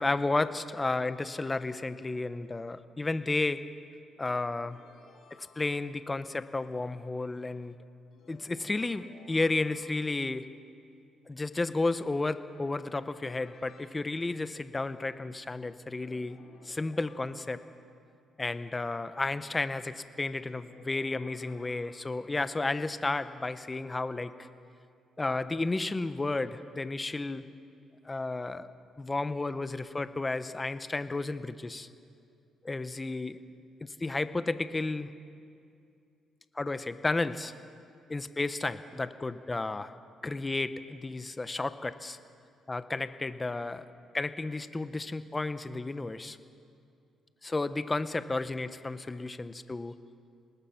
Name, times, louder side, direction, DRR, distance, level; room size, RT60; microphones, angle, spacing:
voice 1, 0.0-3.6 4.2-4.8 5.3-7.8 8.3-10.5 11.3-16.4 16.6-17.6 18.4-24.5 25.2-27.5 28.0-28.7 29.0-31.9 32.6-33.4 33.8-35.1 36.5-37.5 38.1-39.9 40.2-42.2 42.7-43.8 44.1-46.4 47.4-49.9, left 3 dB, 20° left, 12 dB, 1.0 m, -32 dB
sound 1, 4.6-6.1 8.1-10.2 12.4-13.9 15.9-18.0 20.4-22.5, left 4 dB, 65° left, 4.6 m, -58 dB
26.0 x 19.5 x 6.0 m, 2.5 s
cardioid pair, 90°, 0 cm